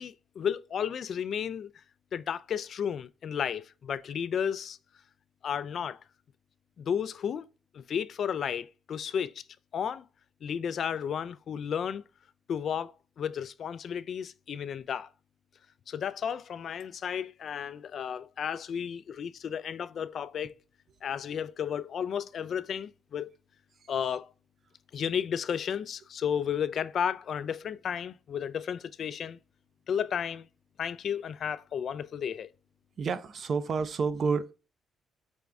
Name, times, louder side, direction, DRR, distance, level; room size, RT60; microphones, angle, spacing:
voice 1, 0.0-1.7 2.1-4.8 5.4-6.0 6.8-7.5 7.7-9.3 9.7-10.0 10.4-12.0 12.5-15.1 15.9-20.5 21.0-23.3 23.9-24.3 24.9-29.4 29.9-30.5 30.8-32.5, left 8 dB, 60° left, 0.3 m, -33 dB
voice 2, 33.0-34.5, right 5 dB, 50° right, 0.5 m, -29 dB
5.1 x 2.4 x 3.2 m
cardioid pair, 90°, 0 cm